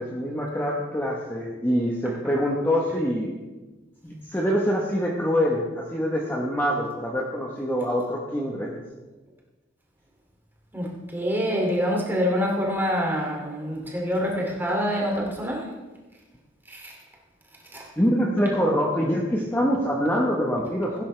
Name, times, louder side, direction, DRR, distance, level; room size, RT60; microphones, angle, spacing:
voice 1, 0.0-3.4 4.0-8.7 18.0-21.0, equal, 10° left, -2 dB, 1.1 m, -25 dB
voice 2, 10.7-15.7 16.7-16.9 17.7-17.9, equal, 10° right, -2 dB, 2.6 m, -26 dB
16.5 x 9.7 x 3.3 m, 1.2 s
head